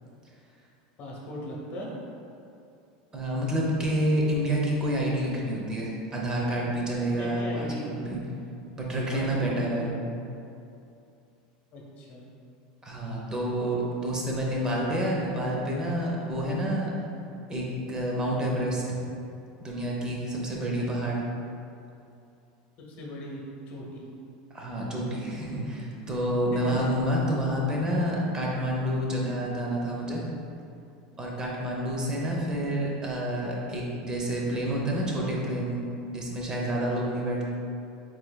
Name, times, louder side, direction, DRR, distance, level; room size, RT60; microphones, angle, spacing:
voice 1, 1.0-1.9 6.9-8.1 8.9-9.9 11.7-12.3 22.8-23.4 23.7-24.0 25.4-25.6 26.5-26.9, left 1 dB, 45° left, -2 dB, 0.9 m, -39 dB
voice 2, 3.1-8.2 8.8-9.9 12.8-16.9 17.5-18.8 19.6-21.2 24.5-30.2 31.2-35.8 36.1-37.4, equal, 20° right, -3 dB, 0.7 m, -28 dB
4.5 x 4.0 x 2.3 m, 2.7 s
supercardioid pair, 140°, 4 cm